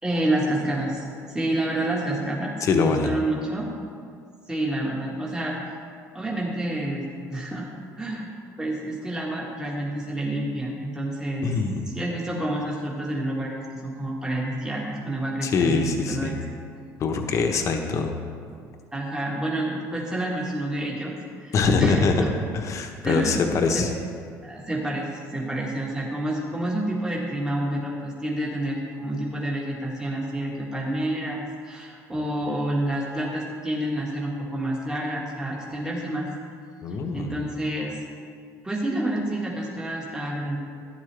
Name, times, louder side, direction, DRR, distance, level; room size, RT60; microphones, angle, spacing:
voice 1, 0.0-3.7 4.5-5.6 6.1-7.7 8.0-8.3 8.6-11.4 11.9-16.4 18.9-21.5 21.8-22.3 23.0-23.4 23.7-23.8 24.4-36.3 37.1-38.0 38.6-40.6, right 1 dB, 10° right, -4 dB, 1.8 m, -28 dB
voice 2, 2.6-3.1 11.4-11.8 15.4-16.4 17.0-18.2 21.5-22.2 22.5-23.9 36.8-37.4, left 4 dB, 50° left, 4 dB, 1.1 m, -23 dB
12.0 x 10.5 x 3.4 m, 2.2 s
cardioid pair, 110°, 7 cm